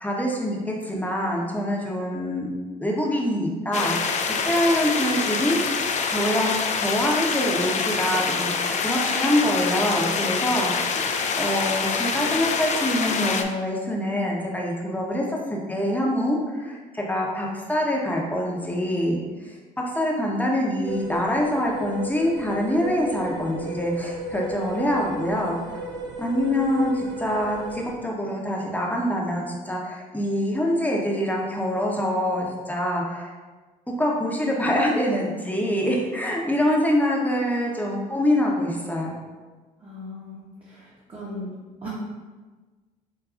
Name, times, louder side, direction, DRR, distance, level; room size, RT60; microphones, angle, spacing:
voice 1, 0.0-2.5 2.8-4.1 4.4-5.6 6.1-11.1 11.4-19.2 19.4-19.5 19.9-25.6 26.2-33.3 34.0-39.1, equal, 10° left, -2 dB, 0.7 m, -25 dB
sound 1, 3.7-13.4, left 5 dB, 40° left, 0.4 m, -25 dB
sound 2, 20.9-27.9, right 1 dB, 80° right, 0.6 m, -35 dB
voice 2, 39.8-41.5 41.8-41.9, left 1 dB, 30° right, -7 dB, 1.0 m, -38 dB
5.0 x 2.2 x 2.4 m, 1.3 s
hypercardioid pair, 60°, 18 cm